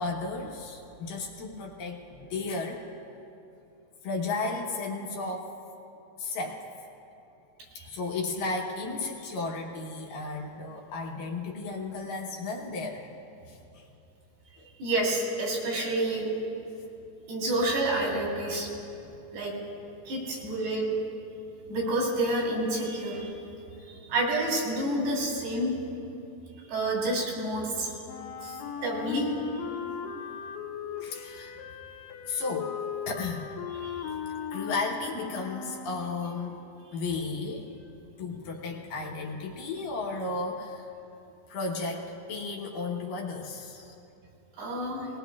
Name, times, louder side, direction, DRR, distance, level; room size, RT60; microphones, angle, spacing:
voice 1, 0.0-2.8 4.0-5.5 6.2-6.9 7.8-13.1 13.5-13.9 14.6-14.7 20.3-20.4 23.2-23.3 24.0-24.1 28.8-29.0 29.8-30.0 31.0-31.6 32.3-33.5 34.5-36.6 36.9-37.9 38.2-40.9 41.5-43.9, left 3 dB, 70° left, -1 dB, 2.5 m, -34 dB
voice 2, 14.8-16.3 17.3-18.7 19.3-19.5 20.1-20.9 21.7-23.3 24.1-25.7 26.7-27.9 28.4-29.3 33.8-34.1 44.6-45.1, right 1 dB, 80° right, -3 dB, 4.7 m, -29 dB
Wind instrument woodwind instrument, 28.1-36.2, left 6 dB, 85° left, 2.7 m, -38 dB
20.0 x 19.0 x 2.3 m, 2.8 s
omnidirectional pair, 4.5 m